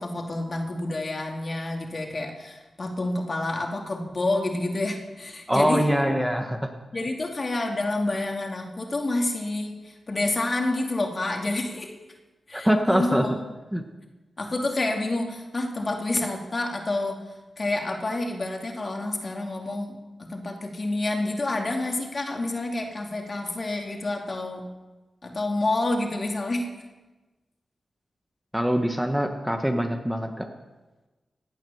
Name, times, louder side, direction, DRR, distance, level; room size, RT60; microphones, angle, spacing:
voice 1, 0.0-5.9 6.9-11.9 12.5-13.4 14.4-17.2 17.6-24.7 25.2-26.7, left 2 dB, 45° left, 2 dB, 2.6 m, -28 dB
voice 2, 5.5-6.7 12.5-13.3 13.7-13.8 28.5-30.5, equal, 5° right, 4 dB, 1.4 m, -23 dB
17.5 x 9.0 x 7.1 m, 1.2 s
cardioid pair, 60°, 0 cm